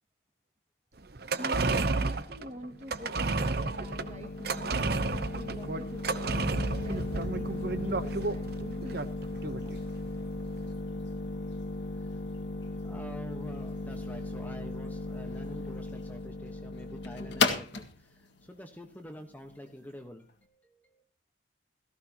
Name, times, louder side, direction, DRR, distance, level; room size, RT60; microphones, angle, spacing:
sound 1, 1.1-9.8 10.1-10.2, right 3 dB, 50° right, 0.9 m, -31 dB
voice 1, 1.4-9.1, equal, 35° right, 3 dB, 2.3 m, -45 dB
sound 2, 2.3-19.9, left 3 dB, 65° left, 1.9 m, -36 dB
voice 2, 12.8-21.0, equal, 10° left, 4 dB, 1.2 m, -47 dB
17.5 x 15.0 x 2.9 m, 0.32 s
head